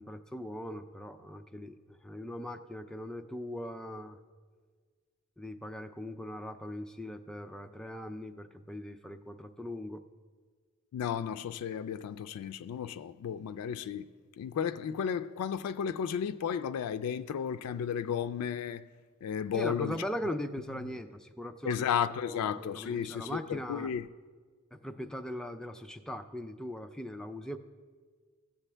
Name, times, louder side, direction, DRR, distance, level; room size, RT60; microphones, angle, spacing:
voice 1, 0.0-4.2 5.4-10.0 19.5-21.8 22.3-23.9 24.7-27.6, left 1 dB, 5° left, 0.3 m, -40 dB
voice 2, 10.9-14.1 14.4-18.9 19.2-20.0 20.3-20.4 21.6-24.1, left 8 dB, 85° left, 0.3 m, -33 dB
15.0 x 7.2 x 3.3 m
head